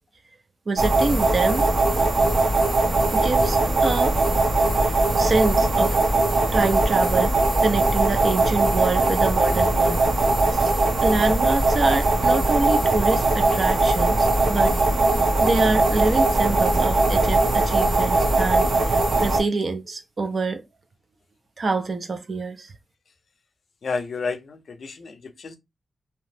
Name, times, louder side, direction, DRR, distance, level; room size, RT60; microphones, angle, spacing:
voice 1, 0.7-1.7 3.1-4.2 4.8-6.0 6.5-7.4 7.6-10.1 11.0-14.8 15.4-20.6 21.6-22.7, right 3 dB, 40° right, 0.4 m, -26 dB
sound 1, 0.8-19.4, right 2 dB, 55° right, 0.8 m, -20 dB
voice 2, 23.8-25.6, left 4 dB, 50° left, 0.5 m, -31 dB
2.8 x 2.0 x 3.1 m
wide cardioid pair, 180°, 0 cm